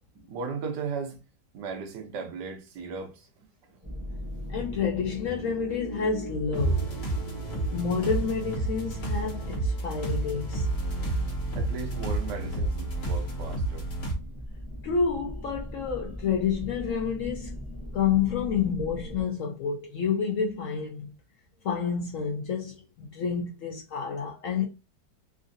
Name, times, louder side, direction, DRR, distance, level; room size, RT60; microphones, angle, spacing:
voice 1, 0.1-1.2 1.5-3.3 3.7-3.8 11.6-13.9, right 5 dB, 80° right, 1.4 m, -36 dB
sound 1, 3.8-19.2, equal, 25° right, 0.4 m, -38 dB
voice 2, 4.5-7.0 7.7-10.7 14.8-17.6 17.9-21.1 21.6-24.7, left 6 dB, 70° left, 0.7 m, -29 dB
sound 2, 6.5-14.1, right 2 dB, 50° left, 1.4 m, -31 dB
3.7 x 2.5 x 2.5 m
omnidirectional pair, 1.8 m